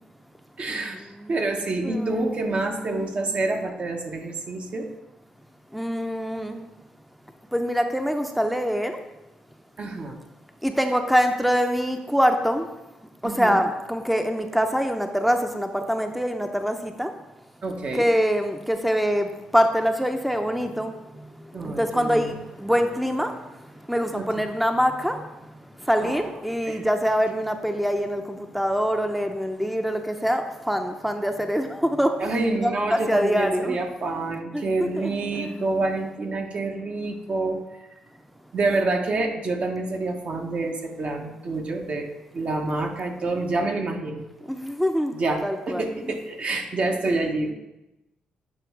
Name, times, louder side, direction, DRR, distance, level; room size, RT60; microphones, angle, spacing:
voice 1, 0.6-4.9 9.8-10.2 13.2-13.6 17.6-18.1 21.5-22.4 24.1-24.2 26.0-26.3 26.7-26.8 32.2-37.8 38.5-42.1 42.3-44.3 45.1-45.4 45.7-47.5, right 2 dB, 55° right, 3 dB, 0.9 m, -27 dB
voice 2, 1.8-2.4 5.7-6.6 7.5-9.0 10.6-12.7 13.2-17.1 17.9-20.9 21.6-23.3 23.9-25.2 25.9-32.3 32.6-33.8 34.5-34.6 35.0-35.6 44.5-45.1 45.4-46.2, equal, ahead, 6 dB, 0.5 m, -24 dB
7.6 x 3.1 x 4.6 m, 0.99 s
supercardioid pair, 60°, 3 cm